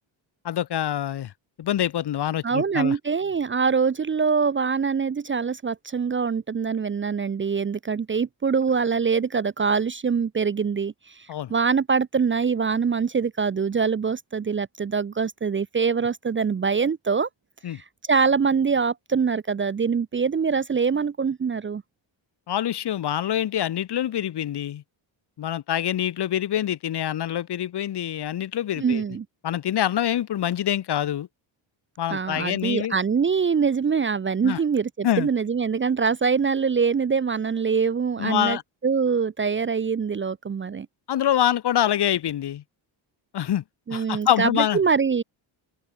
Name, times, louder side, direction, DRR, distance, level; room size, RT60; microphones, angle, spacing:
voice 1, 0.4-1.3 1.6-3.0 11.3-11.5 17.6-17.8 22.5-24.8 25.4-29.0 29.4-31.3 32.0-32.9 34.4-34.6 35.0-35.3 38.2-38.6 41.1-42.6 43.3-43.6 43.9-44.8, left 11 dB, 55° left, 1.6 m, -25 dB
voice 2, 2.4-17.3 17.7-21.8 28.8-29.3 32.1-38.6 38.8-40.9 43.9-45.2, right 5 dB, 25° right, 0.7 m, -24 dB
open air
cardioid pair, 140°, 48 cm